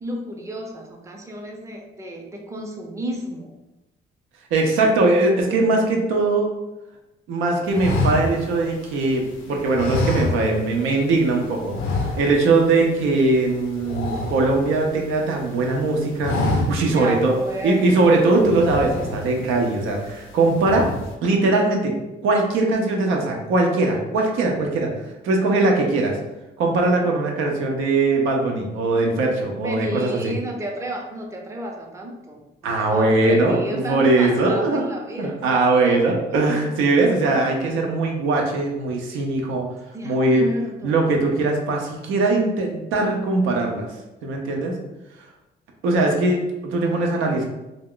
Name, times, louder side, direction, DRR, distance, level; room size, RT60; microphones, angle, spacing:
voice 1, 0.0-3.5 16.9-18.1 29.6-36.4 39.9-40.9, equal, 15° right, 0 dB, 0.5 m, -32 dB
voice 2, 4.5-6.5 7.3-17.4 17.6-20.9 21.2-21.9 22.2-24.9 25.2-26.2 26.6-30.4 32.6-34.9 35.2-39.7 40.0-40.5 40.8-43.9 44.2-44.7 45.8-47.5, right 2 dB, 90° right, 1 dB, 0.6 m, -20 dB
sound 1, 7.7-9.2 9.7-10.8 11.1-11.3 11.7-12.6 12.9-13.1 13.4-15.1 15.5-15.8 16.1-17.0 17.5-17.6 18.3-19.5 19.9-20.3 20.5-21.1, left 2 dB, 85° left, 0.5 m, -26 dB
2.3 x 2.1 x 3.6 m, 0.99 s
cardioid pair, 90°, 20 cm